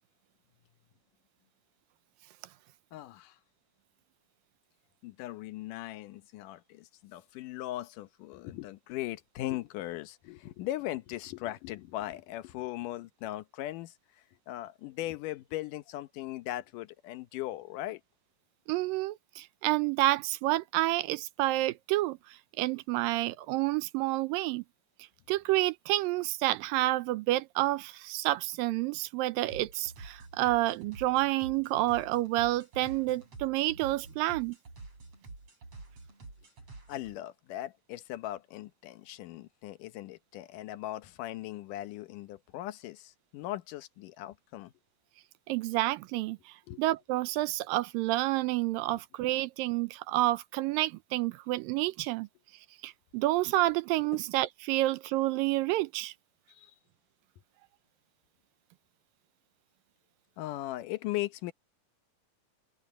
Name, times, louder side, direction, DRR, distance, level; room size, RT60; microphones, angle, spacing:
voice 1, 2.9-3.3 5.0-13.9 14.5-18.0 36.9-44.7 46.7-46.8 54.1-54.2 56.5-56.7 60.4-61.5, left 15 dB, 75° left, 2.4 m, -39 dB
voice 2, 18.7-22.2 22.6-24.6 25.3-34.6 45.5-46.4 46.8-52.3 52.8-56.1, right 17 dB, 85° right, 2.4 m, -29 dB
sound 1, 29.5-37.2, right 3 dB, 45° right, 8.4 m, -48 dB
open air
omnidirectional pair, 4.0 m